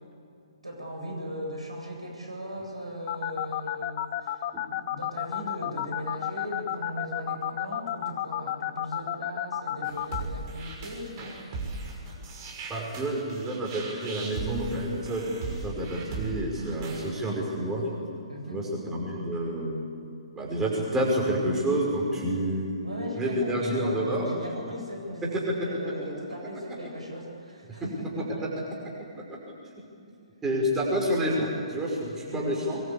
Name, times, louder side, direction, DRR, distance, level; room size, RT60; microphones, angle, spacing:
voice 1, 0.6-11.4 18.3-18.6 22.8-28.5 32.3-32.5, equal, 85° right, 0 dB, 7.8 m, -38 dB
sound 1, 3.1-10.2, left 13 dB, 35° left, 0.9 m, -30 dB
sound 2, 9.8-17.1, right 3 dB, 35° right, 5.9 m, -37 dB
voice 2, 12.7-17.9 18.5-19.9 20.3-24.3 25.3-25.6 27.7-27.8 29.1-29.4 29.8-29.9 30.4-32.9, right 1 dB, 10° right, -3 dB, 5.6 m, -29 dB
23.5 x 22.0 x 8.6 m, 2.5 s
figure-of-eight pair, 130°, 3 cm